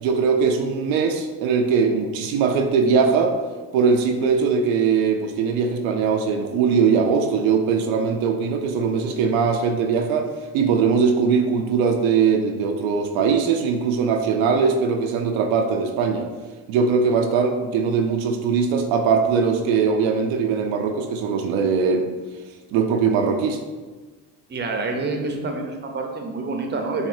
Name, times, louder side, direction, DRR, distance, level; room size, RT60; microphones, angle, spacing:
voice 1, 0.0-3.4 3.7-16.3 16.7-22.1 22.7-23.6, right 5 dB, 75° right, 4 dB, 0.6 m, -21 dB
voice 2, 24.5-27.1, right 3 dB, 20° right, 3 dB, 0.6 m, -27 dB
4.9 x 2.7 x 2.6 m, 1.3 s
hypercardioid pair, 60°, 48 cm